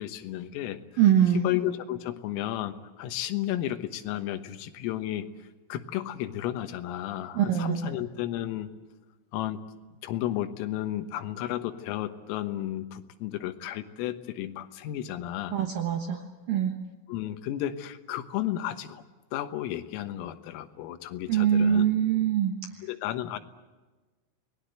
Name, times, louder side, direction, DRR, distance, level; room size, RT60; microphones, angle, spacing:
voice 1, 0.0-0.8 1.3-5.3 5.7-8.7 9.3-9.6 10.0-15.6 17.1-19.0 19.3-21.9 22.8-23.4, left 13 dB, 85° left, 9 dB, 3.9 m, -33 dB
voice 2, 1.0-1.5 7.4-7.9 15.5-16.7 21.3-22.5, right 9 dB, 75° right, 4 dB, 2.1 m, -23 dB
28.5 x 20.0 x 8.0 m, 1.2 s
omnidirectional pair, 5.9 m